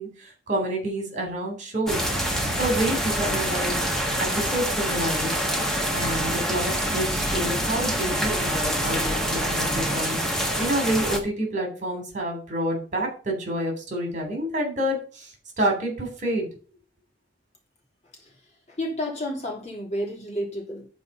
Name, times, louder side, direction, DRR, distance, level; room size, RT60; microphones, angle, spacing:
voice 1, 0.0-2.1 2.6-3.8 4.2-5.3 5.9-10.2 10.6-16.5, right 1 dB, 40° right, 2 dB, 3.3 m, -28 dB
sound 1, 1.9-11.2, equal, 5° left, 1.5 m, -26 dB
voice 2, 18.7-20.9, equal, 40° left, 0 dB, 2.7 m, -31 dB
10.5 x 4.6 x 5.5 m, 0.39 s
head